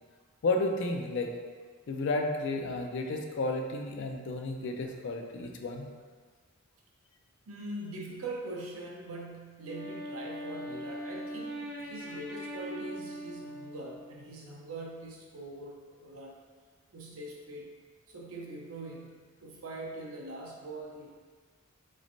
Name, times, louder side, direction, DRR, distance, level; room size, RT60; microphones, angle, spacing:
voice 1, 0.4-1.3 1.9-5.9, left 2 dB, 60° left, 4 dB, 0.4 m, -32 dB
voice 2, 7.5-16.4 16.9-17.7 18.1-21.1, right 2 dB, 90° right, -2 dB, 0.7 m, -42 dB
Wind instrument woodwind instrument, 9.6-14.3, equal, 45° right, 0.5 m, -41 dB
4.0 x 3.1 x 2.6 m, 1.5 s
head